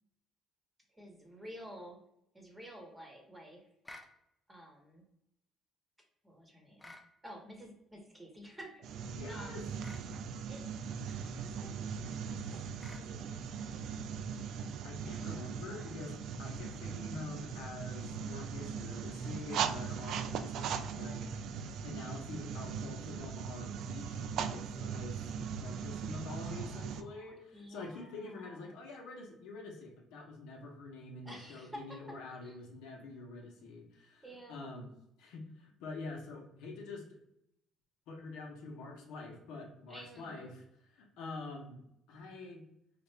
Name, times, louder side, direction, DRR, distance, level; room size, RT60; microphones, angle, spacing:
voice 1, 0.9-2.0 2.3-3.7 4.5-5.1 6.2-6.9 7.2-9.6 10.5-10.6 11.0-12.4 12.9-14.0 15.0-16.0 26.3-28.7 31.2-32.2 32.4-32.6 34.2-34.7 39.9-40.5, equal, 10° right, 2 dB, 1.0 m, -52 dB
sound 1, 3.8-4.1 6.8-7.1 9.8-10.1 12.8-13.1, left 1 dB, 10° left, 0.4 m, -51 dB
sound 2, 8.8-27.0, right 7 dB, 65° right, 0.3 m, -39 dB
voice 2, 9.1-9.6 14.8-21.5 21.8-25.3 25.6-34.2 34.5-34.9 35.2-37.0 38.1-42.6, left 3 dB, 85° left, 0 dB, 1.0 m, -46 dB
4.2 x 2.5 x 3.2 m, 0.79 s
cardioid pair, 125°, 0 cm